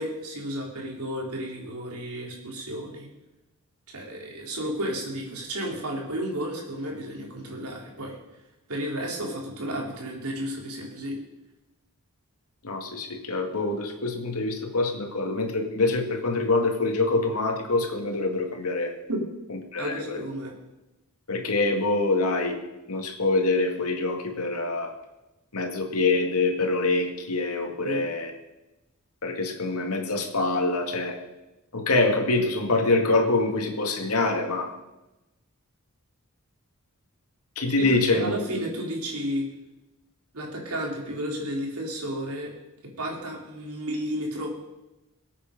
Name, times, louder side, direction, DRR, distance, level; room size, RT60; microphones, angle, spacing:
voice 1, 0.0-3.1 3.9-8.2 8.7-11.2 19.1-19.3 19.8-20.5 27.8-28.1 37.8-39.4 40.3-42.5 43.0-44.5, equal, 80° right, -1 dB, 3.8 m, -32 dB
voice 2, 12.6-18.9 19.7-20.2 21.3-22.6 22.9-24.9 25.5-28.3 29.2-31.2 31.7-34.7 37.6-38.3, left 3 dB, 85° left, 4 dB, 2.1 m, -25 dB
22.0 x 8.6 x 5.3 m, 1.0 s
head